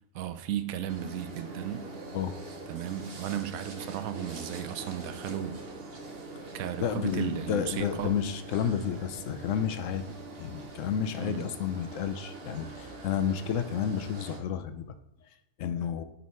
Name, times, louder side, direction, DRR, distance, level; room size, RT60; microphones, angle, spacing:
voice 1, 0.1-1.9 2.7-5.7 6.5-8.2 11.2-11.5, right 10 dB, 80° right, 1.0 m, -35 dB
sound 1, 0.9-14.4, right 2 dB, 45° right, 1.3 m, -43 dB
voice 2, 6.8-10.1 10.4-14.9 15.6-16.0, left 8 dB, 70° left, 1.0 m, -31 dB
9.3 x 4.1 x 4.3 m
omnidirectional pair, 1.4 m